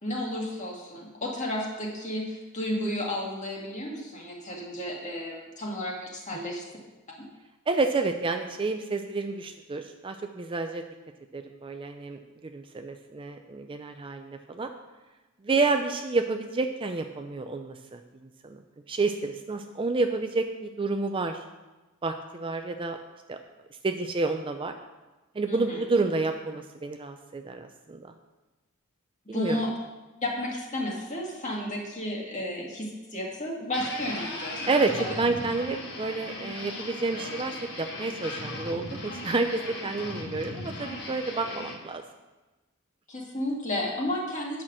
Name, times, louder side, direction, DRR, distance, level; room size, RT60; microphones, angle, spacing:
voice 1, 0.0-6.6 7.2-7.3 25.5-25.8 29.3-29.7 30.2-34.7 35.0-35.1 43.1-44.6, left 1 dB, 35° left, -1 dB, 1.9 m, -32 dB
voice 2, 7.7-10.8 11.3-14.7 15.4-18.0 18.4-18.6 18.9-21.4 22.0-23.0 23.3-23.4 23.8-24.8 25.3-28.1 29.3-29.6 34.7-42.0, right 3 dB, 25° right, 6 dB, 0.4 m, -29 dB
sound 1, 33.7-41.7, left 2 dB, 50° left, 1.5 m, -37 dB
8.9 x 5.9 x 6.0 m, 1.2 s
head